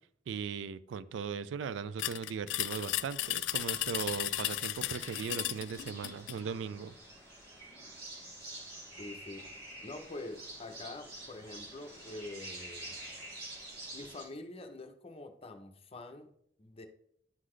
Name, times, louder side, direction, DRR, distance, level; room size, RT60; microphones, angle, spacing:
voice 1, 0.3-6.9, right 6 dB, 80° right, 0.3 m, -38 dB
sound 1, 2.0-6.4, left 15 dB, 85° left, 0.3 m, -35 dB
sound 2, 3.8-14.2, right 1 dB, 60° right, 2.1 m, -48 dB
voice 2, 9.0-9.5 9.8-13.0 13.9-16.3 16.6-16.9, left 2 dB, 35° left, 0.6 m, -45 dB
11.0 x 3.9 x 3.2 m
head